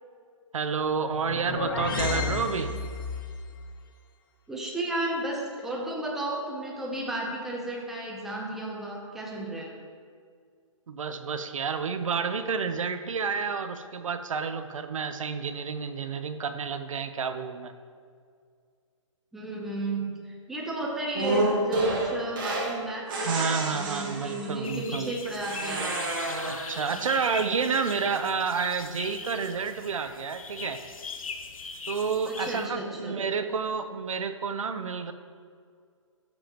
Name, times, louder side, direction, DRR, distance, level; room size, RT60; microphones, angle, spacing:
voice 1, 0.5-2.7 10.9-17.7 23.2-25.1 26.5-30.8 31.9-35.1, right 5 dB, 75° right, 9 dB, 0.8 m, -30 dB
sound 1, 1.0-3.3, left 4 dB, 40° left, 1.0 m, -31 dB
voice 2, 4.5-9.7 19.3-25.9 26.9-27.1 32.3-33.2, right 1 dB, ahead, -2 dB, 0.7 m, -33 dB
sound 2, 21.1-22.8 23.1-24.6 25.4-26.8, right 2 dB, 40° right, 1.9 m, -29 dB
sound 3, 24.6-32.7, left 5 dB, 90° left, 1.0 m, -40 dB
13.0 x 7.1 x 3.0 m, 2.1 s
hypercardioid pair, 165°, 17 cm